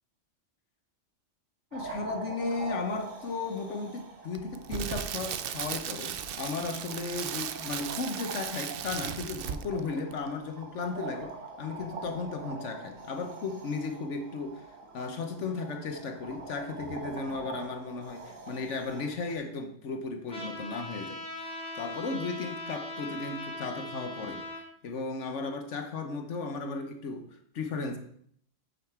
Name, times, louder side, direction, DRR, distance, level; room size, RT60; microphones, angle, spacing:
voice 1, 1.7-14.7 14.9-24.4 24.8-28.0, left 4 dB, 70° left, 6 dB, 1.2 m, -35 dB
sound 1, 1.7-19.3, right 3 dB, 90° right, 1.7 m, -44 dB
Crackle, 4.3-9.8 10.1-10.3, right 9 dB, 60° right, 0.6 m, -36 dB
Trumpet, 20.3-24.6, left 1 dB, 5° left, 2.4 m, -40 dB
9.1 x 5.7 x 4.5 m, 0.65 s
omnidirectional pair, 1.3 m